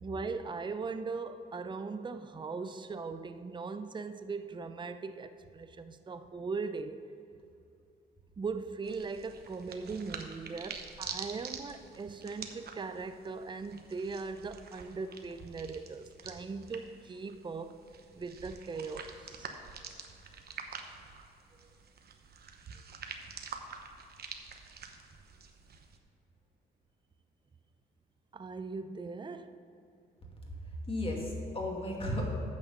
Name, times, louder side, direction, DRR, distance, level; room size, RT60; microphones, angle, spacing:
voice 1, 0.0-7.0 8.4-17.7 18.1-19.5 28.3-29.5, right 4 dB, 25° right, 9 dB, 0.6 m, -39 dB
sound 1, 8.8-26.0, right 5 dB, 50° right, 1.0 m, -47 dB
voice 2, 30.6-32.3, left 1 dB, 30° left, -2 dB, 2.4 m, -34 dB
8.8 x 6.3 x 6.6 m, 2.6 s
cardioid pair, 90°, 20 cm